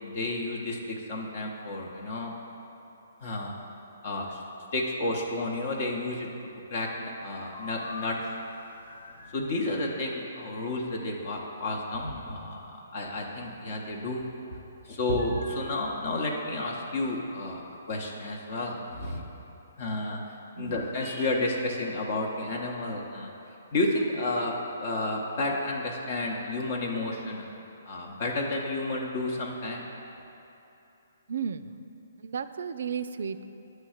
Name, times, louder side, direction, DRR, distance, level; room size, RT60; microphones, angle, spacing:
voice 1, 0.0-2.3 3.2-3.5 4.0-4.4 4.7-6.3 6.7-8.2 9.3-14.2 14.8-17.6 17.9-19.2 19.8-20.2 20.6-23.3 23.7-24.5 24.8-27.4 27.9-29.8, left 2 dB, 50° left, -1 dB, 0.8 m, -31 dB
sound 1, 7.5-9.5 15.2-17.9, left 3 dB, 75° left, 0.5 m, -46 dB
voice 2, 31.3-31.8 32.2-33.4, right 6 dB, 65° right, 11 dB, 0.3 m, -34 dB
9.0 x 3.2 x 6.4 m, 3.0 s
hypercardioid pair, 145°, 0 cm